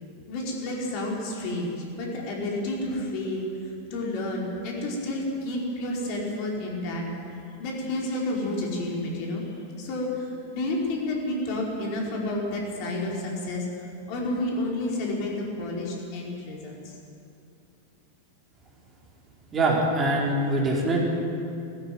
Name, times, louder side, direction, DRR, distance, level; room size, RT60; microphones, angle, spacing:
voice 1, 0.3-7.0 7.6-9.5 9.8-16.9, left 1 dB, 45° left, -2 dB, 5.0 m, -30 dB
voice 2, 19.5-21.0, right 1 dB, 25° right, -2 dB, 4.7 m, -23 dB
20.0 x 14.5 x 9.5 m, 2.6 s
figure-of-eight pair, 90°, 0 cm